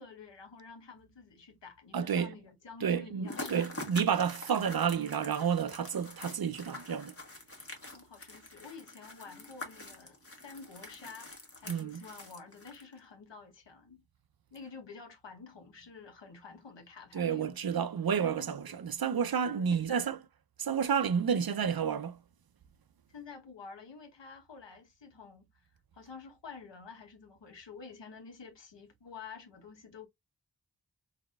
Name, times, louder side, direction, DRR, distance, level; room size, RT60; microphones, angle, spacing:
voice 1, 0.0-3.7 7.9-14.0 14.5-17.6 18.2-18.8 19.3-20.0 23.1-25.7 25.9-30.1, left 5 dB, 85° left, 1.2 m, -50 dB
voice 2, 1.9-2.3 2.8-7.1 11.7-12.0 17.1-20.2 20.6-22.2, right 7 dB, 60° right, 0.6 m, -30 dB
sound 1, 3.2-13.0, left 2 dB, 35° left, 1.3 m, -46 dB
3.9 x 3.5 x 2.4 m
wide cardioid pair, 50°, 42 cm